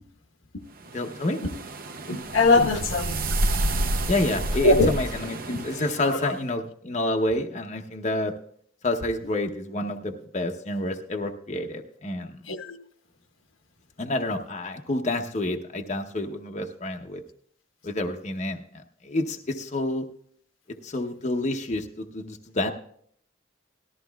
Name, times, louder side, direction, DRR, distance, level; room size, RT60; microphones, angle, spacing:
voice 1, 0.9-1.4 4.1-8.3 8.8-12.3 14.0-17.2 17.8-20.1 20.8-22.7, left 2 dB, 35° left, 3 dB, 0.8 m, -29 dB
sound 1, 0.9-6.2, right 1 dB, 45° right, 0.7 m, -29 dB
voice 2, 2.1-3.2 4.6-4.9 5.5-5.6 6.1-6.3 12.5-12.8, left 2 dB, 80° left, 6 dB, 1.1 m, -21 dB
18.5 x 13.0 x 2.3 m, 0.63 s
head